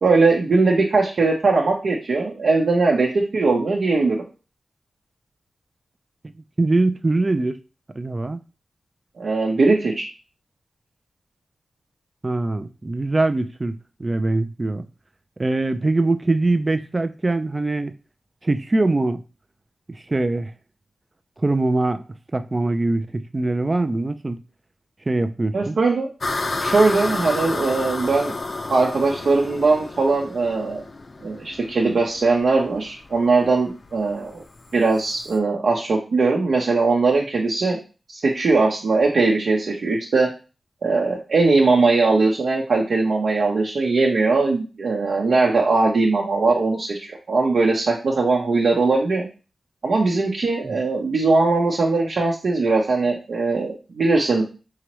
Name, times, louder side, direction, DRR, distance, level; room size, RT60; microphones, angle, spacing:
voice 1, 0.0-4.2 9.2-10.0 25.5-26.1 26.6-28.3 28.7-30.8 31.2-34.4 34.7-37.8 38.1-40.3 40.8-49.3 49.8-54.4, right 3 dB, 75° right, 0.8 m, -20 dB
voice 2, 6.6-7.6 8.0-8.4 12.2-14.8 15.4-17.9 18.4-19.2 19.9-20.5 21.4-22.0 22.3-24.4 25.1-25.8 50.6-50.7, right 2 dB, 35° right, 0.4 m, -22 dB
sound 1, 26.2-35.4, left 2 dB, 45° left, 0.5 m, -31 dB
4.8 x 3.0 x 3.1 m
cardioid pair, 65°, 0 cm